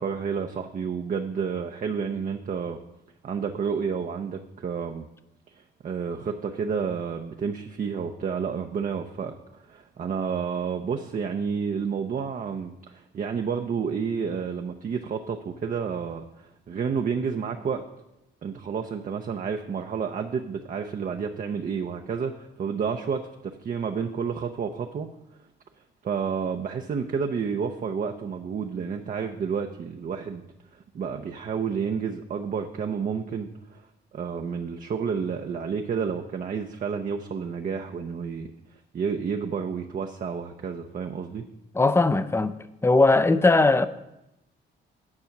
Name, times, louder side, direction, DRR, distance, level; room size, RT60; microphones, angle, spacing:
voice 1, 0.0-2.8 3.2-5.1 5.5-9.3 9.6-17.9 18.4-25.1 26.0-30.4 30.7-33.9 34.1-38.5 38.9-41.5, right 6 dB, 45° right, 0.7 m, -30 dB
voice 2, 41.7-42.5 42.8-43.9, left 3 dB, 15° left, 0.6 m, -19 dB
9.8 x 6.3 x 5.9 m
cardioid pair, 90°, 20 cm